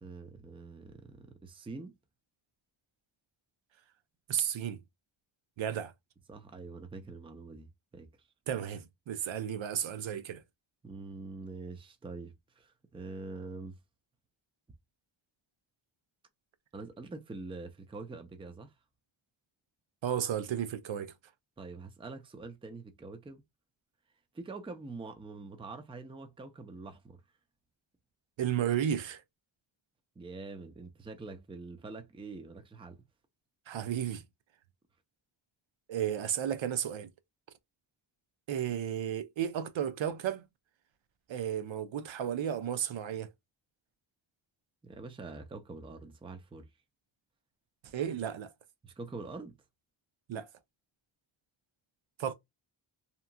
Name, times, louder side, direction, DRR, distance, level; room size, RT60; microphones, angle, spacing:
voice 1, 0.0-1.9 6.3-8.1 10.8-13.8 16.7-18.7 21.6-23.4 24.3-27.2 30.2-33.0 44.8-46.7 48.8-49.6, right 3 dB, 10° right, 0.4 m, -45 dB
voice 2, 4.3-4.8 5.6-5.9 8.5-10.4 20.0-21.1 28.4-29.2 33.7-34.2 35.9-37.1 38.5-40.4 41.3-43.3 47.8-48.5 50.3-50.5 52.2-52.3, right 9 dB, 70° right, 0.6 m, -33 dB
2.9 x 2.3 x 2.5 m
wide cardioid pair, 125°, 47 cm